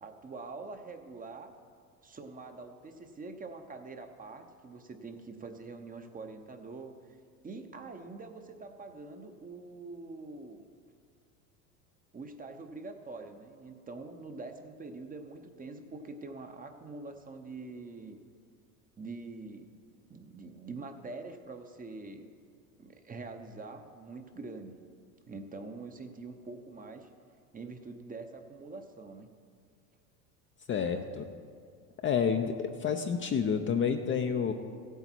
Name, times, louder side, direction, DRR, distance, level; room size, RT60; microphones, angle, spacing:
voice 1, 0.0-1.5 2.0-6.9 7.4-10.7 12.1-18.2 19.0-19.8 20.1-22.3 22.8-24.8 25.3-27.1 27.5-29.3, right 3 dB, 20° right, 6 dB, 0.9 m, -45 dB
voice 2, 30.7-31.3 32.0-34.5, left 6 dB, 25° left, 5 dB, 0.6 m, -29 dB
15.5 x 8.2 x 4.5 m, 2.2 s
hypercardioid pair, 90°, 47 cm